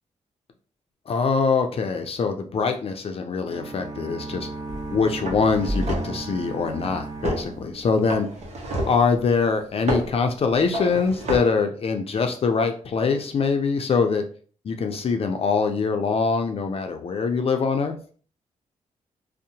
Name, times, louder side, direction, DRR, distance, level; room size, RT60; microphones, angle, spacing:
voice 1, 1.1-4.5 4.9-8.3 8.9-14.2 14.6-17.9, left 5 dB, 50° left, 6 dB, 0.4 m, -23 dB
sound 1, 3.5-8.4, right 3 dB, 30° right, 0.4 m, -36 dB
sound 2, 4.7-4.9 5.3-6.2 7.2-7.5 8.1-9.1 9.9-10.2 10.7-11.4, right 1 dB, 55° right, 0.8 m, -28 dB
2.7 x 2.1 x 2.7 m, 0.42 s
cardioid pair, 85°, 13 cm